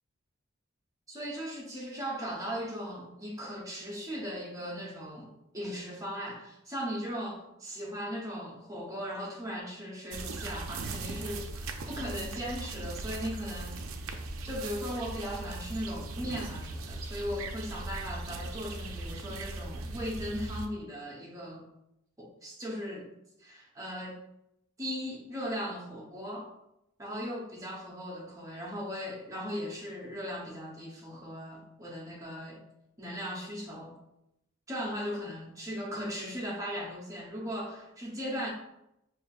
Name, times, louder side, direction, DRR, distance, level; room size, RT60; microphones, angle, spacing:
voice 1, 1.1-14.2 14.4-21.7 22.2-23.1 23.4-24.2 24.8-26.5 27.0-32.6 33.0-34.0 34.7-38.5, equal, 15° right, -3 dB, 0.8 m, -38 dB
sound 1, 10.1-20.7, right 2 dB, 75° right, 0.4 m, -39 dB
5.0 x 2.6 x 2.4 m, 0.82 s
head